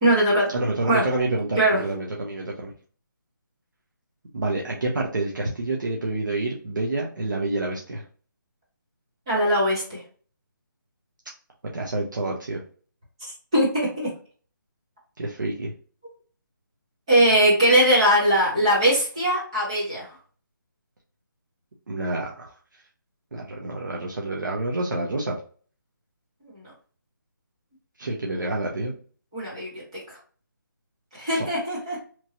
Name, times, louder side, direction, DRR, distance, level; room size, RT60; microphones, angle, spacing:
voice 1, 0.0-0.5 0.8-1.0 1.6-1.8 9.3-10.0 13.2-14.1 17.1-20.1 26.4-26.7 29.3-30.2 31.1-32.0, right 1 dB, 15° right, -7 dB, 0.9 m, -21 dB
voice 2, 0.5-2.7 4.3-8.0 11.7-12.6 15.2-15.7 21.9-22.5 23.3-25.4 28.0-28.9 31.2-31.5, right 2 dB, 65° right, -2 dB, 0.7 m, -28 dB
3.0 x 2.6 x 2.8 m, 0.42 s
hypercardioid pair, 180°, 11 cm